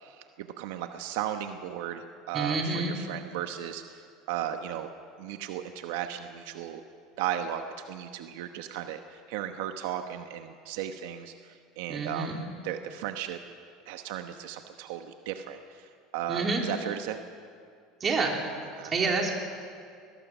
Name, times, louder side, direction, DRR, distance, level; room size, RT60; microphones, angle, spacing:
voice 1, 0.0-4.0 4.3-4.9 5.2-6.8 7.2-13.4 13.9-17.2 18.7-18.9, right 10 dB, 80° right, 7 dB, 1.0 m, -36 dB
voice 2, 2.3-3.0 11.9-12.4 16.3-16.6 18.0-18.3 18.9-19.3, right 3 dB, 25° right, 0 dB, 3.4 m, -28 dB
21.5 x 19.5 x 6.2 m, 2.2 s
supercardioid pair, 140°, 0 cm